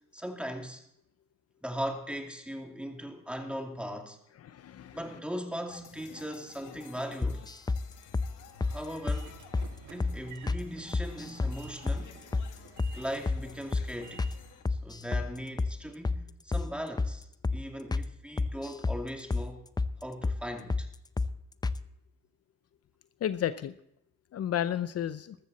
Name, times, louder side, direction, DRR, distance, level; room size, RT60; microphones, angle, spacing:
voice 1, 0.1-0.8 1.6-4.2 4.9-7.5 8.6-9.4 9.9-12.2 12.9-14.3 14.7-19.6 20.0-20.9, equal, 5° right, 2.6 m, -39 dB
voice 2, 4.4-5.0 6.1-6.2 23.2-23.7 24.3-25.4, left 10 dB, 55° left, 0.7 m, -32 dB
sound 1, 5.7-14.6, left 9 dB, 85° left, 1.7 m, -54 dB
sound 2, 7.2-7.8 8.1-8.3 8.6-8.8 9.1-9.2 9.5-9.7 10.0-10.2 10.5-10.6 10.9-11.6 11.9-12.0 12.3-12.5 12.8-13.0 13.3-13.4 13.7-13.9 14.2-14.4 14.7-15.3 15.6-15.7 16.0-16.2 16.5-16.7 17.0-17.1 17.4-17.6 17.9-18.1 18.4-19.0 19.3-19.5 19.8-19.9 20.2-20.4 20.7-20.9 21.2-21.3 21.6-21.8, left 3 dB, 15° left, 0.5 m, -29 dB
Train / Sliding door, 8.2-14.7, right 7 dB, 70° right, 1.6 m, -53 dB
13.5 x 13.5 x 4.2 m
cardioid pair, 90°, 30 cm